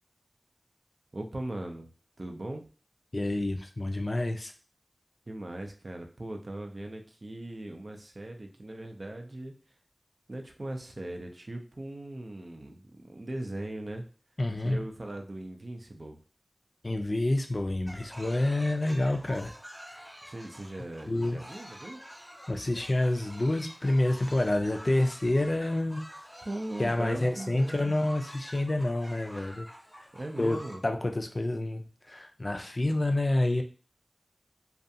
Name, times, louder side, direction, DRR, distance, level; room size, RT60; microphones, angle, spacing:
voice 1, 1.1-1.9 2.2-2.6 5.3-9.5 10.3-14.1 14.6-16.2 20.2-22.0 26.4-27.9 30.1-30.8, right 1 dB, 60° right, 4 dB, 0.4 m, -39 dB
voice 2, 3.1-4.5 14.4-14.8 16.8-19.5 21.1-21.4 22.5-26.0 26.8-29.7 30.0-30.1 30.4-30.6 30.8-33.6, left 1 dB, 50° left, 4 dB, 0.3 m, -28 dB
sound 1, 17.9-30.8, equal, 5° left, 0.7 m, -48 dB
2.4 x 2.2 x 2.6 m, 0.39 s
wide cardioid pair, 40°, 0 cm